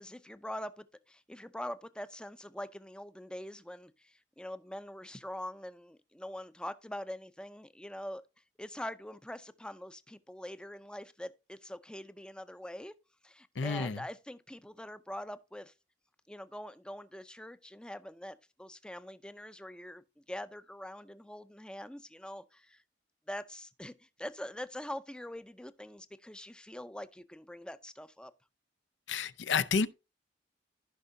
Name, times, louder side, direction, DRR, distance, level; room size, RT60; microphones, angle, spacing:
voice 1, 0.0-8.2 8.6-12.9 13.2-15.7 16.3-22.8 23.3-28.3, left 1 dB, 5° left, 0.5 m, -44 dB
voice 2, 13.6-14.0 29.1-29.9, left 5 dB, 80° left, 0.6 m, -30 dB
15.0 x 5.5 x 2.7 m
head